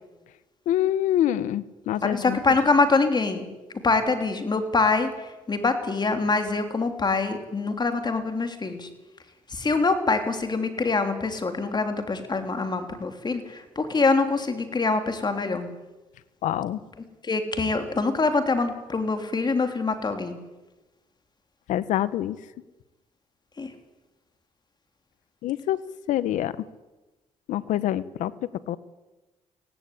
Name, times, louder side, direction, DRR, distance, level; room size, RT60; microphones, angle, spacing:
voice 1, 0.7-2.4 16.4-16.8 21.7-22.4 25.4-25.8 26.1-26.5 27.5-28.3 28.7-28.8, left 12 dB, 85° left, 17 dB, 0.9 m, -25 dB
voice 2, 2.0-3.5 3.8-8.9 9.5-15.7 17.2-20.4 23.6-23.7, left 3 dB, 35° left, 7 dB, 3.3 m, -24 dB
16.5 x 16.5 x 9.9 m, 1.1 s
cardioid pair, 75°, 13 cm